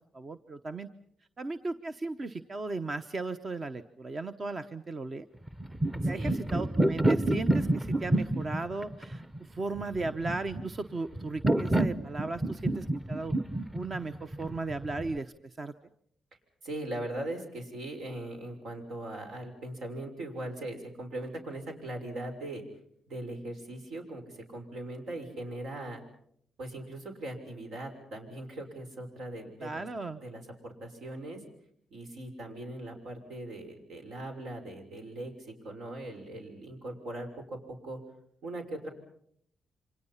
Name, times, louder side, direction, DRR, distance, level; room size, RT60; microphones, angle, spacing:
voice 1, 0.1-0.9 1.4-5.3 6.0-9.2 9.5-13.3 13.7-15.7 29.6-30.2, right 3 dB, 35° right, 9 dB, 1.0 m, -36 dB
sound 1, 5.5-15.2, right 1 dB, 10° right, 0.9 m, -29 dB
voice 2, 6.0-6.4 16.6-22.6 23.1-26.0 26.6-29.9 30.2-31.4 31.9-37.6 37.8-38.0 38.4-38.9, right 1 dB, 75° right, 4 dB, 6.2 m, -40 dB
29.0 x 26.0 x 5.8 m, 0.67 s
cardioid pair, 110°, 0 cm